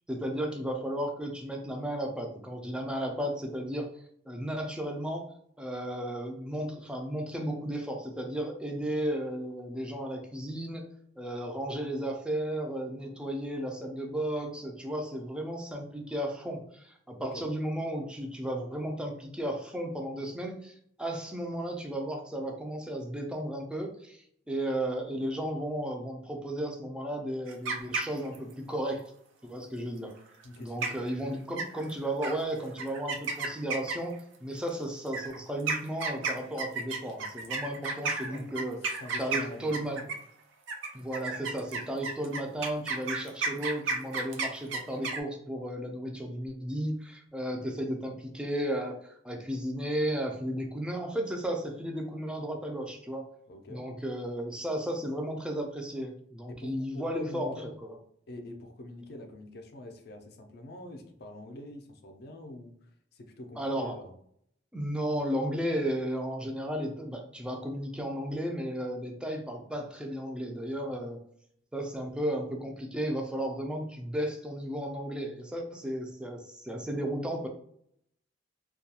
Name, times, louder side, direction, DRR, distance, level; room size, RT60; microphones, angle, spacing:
voice 1, 0.1-3.9 4.3-5.3 5.6-10.8 11.2-29.0 29.4-30.1 30.6-34.2 34.4-40.0 40.9-53.3 53.7-58.0 63.6-63.9 64.7-71.2 71.7-77.5, right 1 dB, 5° right, 2 dB, 0.4 m, -34 dB
sound 1, 27.5-28.5 30.4-30.5 30.8-31.1 31.6-31.9 32.2-32.3 32.8-34.2 35.1-40.3 40.7-45.2, right 4 dB, 80° right, 0.4 m, -32 dB
voice 2, 30.4-31.2 38.3-38.5 39.0-40.0 53.5-53.8 56.5-57.7 58.3-64.1, left 1 dB, 60° left, 5 dB, 0.4 m, -45 dB
2.3 x 2.2 x 2.8 m, 0.68 s
head